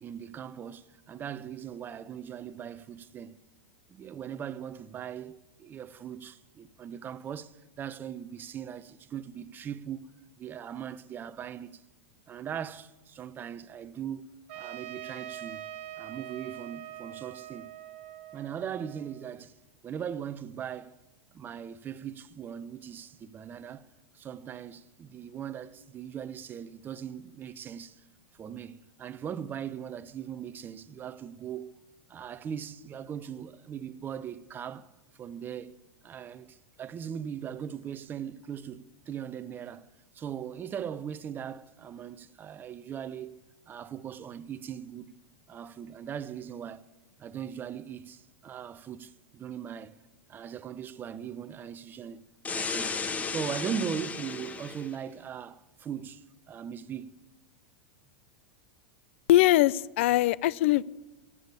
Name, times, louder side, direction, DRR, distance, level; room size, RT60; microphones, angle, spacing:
voice 1, 0.0-3.4 3.9-10.1 10.4-11.8 12.3-14.3 14.6-15.6 16.0-17.7 18.3-19.6 19.8-21.0 21.3-23.9 24.1-28.0 28.4-31.7 32.1-34.9 35.2-35.7 36.0-39.9 40.1-43.4 43.7-45.1 45.5-46.8 47.2-49.9 50.3-53.0 53.3-57.2, right 8 dB, 30° right, 0.8 m, -39 dB
Trumpet, 14.5-19.3, right 12 dB, 65° right, 1.1 m, -43 dB
sound 1, 52.4-54.9, left 4 dB, 20° left, 1.0 m, -34 dB
voice 2, 59.3-60.8, left 15 dB, 65° left, 0.4 m, -22 dB
15.5 x 8.5 x 9.8 m
hypercardioid pair, 100°, 7 cm